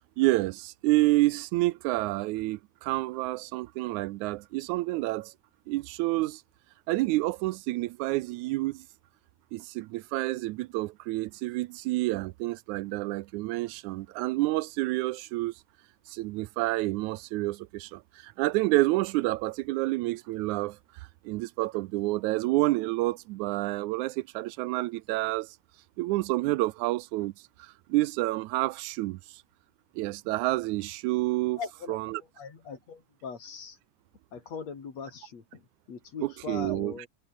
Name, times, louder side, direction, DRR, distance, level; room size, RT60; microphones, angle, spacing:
voice 1, 0.2-5.3 5.7-6.4 6.9-8.9 9.5-15.5 16.1-20.8 21.3-25.5 26.0-27.3 27.6-29.2 30.0-31.6 31.9-32.2 36.2-37.1, right 19 dB, 80° right, 2.0 m, -29 dB
voice 2, 31.6-32.0 32.4-33.8 34.3-37.1, left 5 dB, 60° left, 4.5 m, -40 dB
omnidirectional pair, 3.4 m